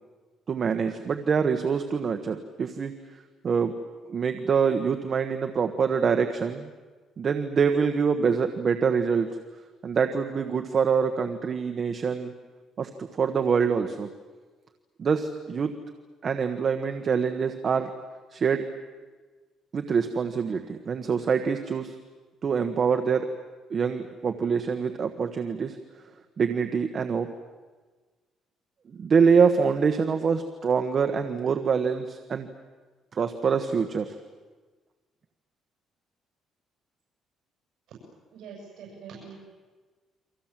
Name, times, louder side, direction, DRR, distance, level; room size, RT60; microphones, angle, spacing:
voice 1, 0.5-2.9 3.4-3.7 4.1-6.7 7.2-9.4 9.8-12.3 12.8-14.1 15.0-15.7 16.2-17.9 18.3-18.6 19.7-22.0 22.4-23.3 23.7-25.8 26.4-27.3 28.9-32.5 33.1-34.2, right 6 dB, 35° right, 6 dB, 1.3 m, -25 dB
voice 2, 38.3-39.3, right 6 dB, 70° right, -2 dB, 7.6 m, -43 dB
29.5 x 25.0 x 7.6 m, 1.4 s
cardioid pair, 170°, 0 cm